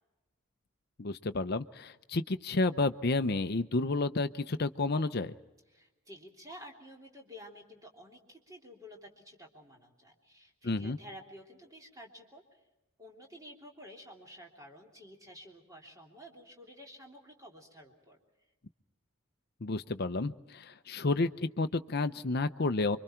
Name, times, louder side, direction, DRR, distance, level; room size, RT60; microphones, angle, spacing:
voice 1, 1.0-5.4 10.6-11.0 19.6-23.0, left 3 dB, 50° left, 10 dB, 0.7 m, -31 dB
voice 2, 5.7-12.6 13.0-18.2, equal, 15° right, 0 dB, 3.3 m, -51 dB
29.0 x 25.0 x 4.5 m, 1.1 s
head